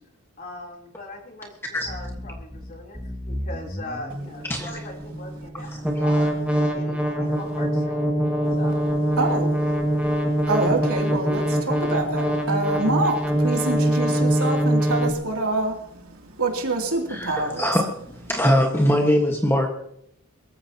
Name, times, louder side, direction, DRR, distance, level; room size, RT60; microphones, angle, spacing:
voice 1, 0.4-1.6 1.8-3.0 3.3-6.3 6.7-8.1 8.6-8.8, left 2 dB, 40° left, 0 dB, 3.4 m, -39 dB
sound 1, 1.9-15.1, right 1 dB, 5° right, 1.6 m, -24 dB
voice 2, 9.2-9.9 10.2-17.7, right 2 dB, 80° right, 1 dB, 2.8 m, -26 dB
voice 3, 17.1-17.8 18.2-19.7, equal, 10° left, 1 dB, 1.4 m, -21 dB
22.5 x 14.0 x 2.9 m, 0.73 s
head